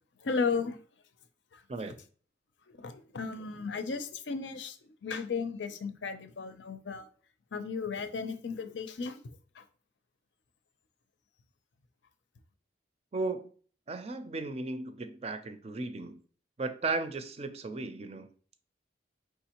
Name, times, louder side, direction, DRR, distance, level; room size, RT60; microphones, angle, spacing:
voice 1, 0.2-0.8 1.5-1.6 2.8-4.8 5.0-7.1 7.5-9.2 9.6-9.7, left 5 dB, 75° left, 0.6 m, -34 dB
voice 2, 13.1-13.5 13.9-16.2 16.6-18.3, right 3 dB, 35° right, 0.4 m, -35 dB
4.7 x 3.5 x 2.9 m
head